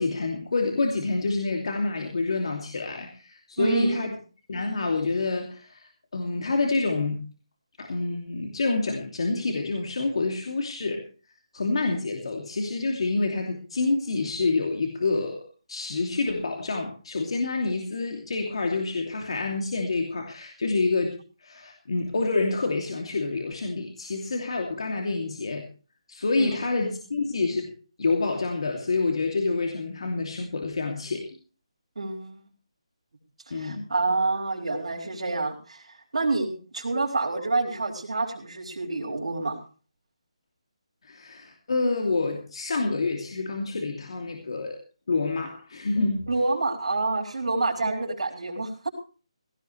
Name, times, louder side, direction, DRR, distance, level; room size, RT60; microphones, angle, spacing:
voice 1, 0.0-4.1 4.5-7.2 7.8-11.1 11.5-15.4 15.7-25.6 26.1-27.7 28.0-31.3 33.5-33.8 41.0-44.8 45.1-46.3, left 3 dB, 60° left, 3 dB, 2.9 m, -27 dB
voice 2, 3.6-4.1 26.4-26.5 32.0-32.4 33.5-39.6 46.3-48.9, right 3 dB, 80° right, -2 dB, 4.5 m, -28 dB
17.0 x 17.0 x 3.3 m, 0.37 s
hypercardioid pair, 170°, 3 cm